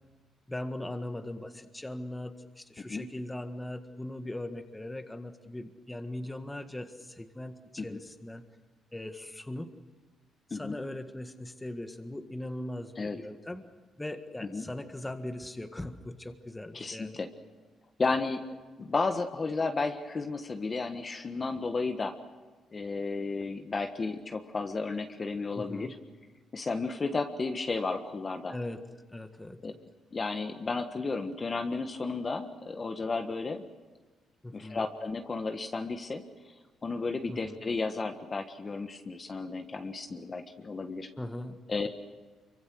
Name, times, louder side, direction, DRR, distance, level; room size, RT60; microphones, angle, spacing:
voice 1, 0.5-8.4 8.9-9.7 10.5-13.7 14.0-17.2 25.5-25.9 28.5-28.8 29.1-29.6 34.4-34.8 37.3-37.6 41.2-41.6, left 1 dB, 10° left, 7 dB, 1.8 m, -39 dB
voice 2, 16.7-17.3 18.0-22.1 22.7-25.9 26.5-28.6 29.6-29.7 30.1-33.6 34.5-36.2 36.8-41.1 41.7-41.9, left 3 dB, 35° left, 6 dB, 1.6 m, -33 dB
25.5 x 24.5 x 6.4 m, 1.3 s
cardioid pair, 90°, 0 cm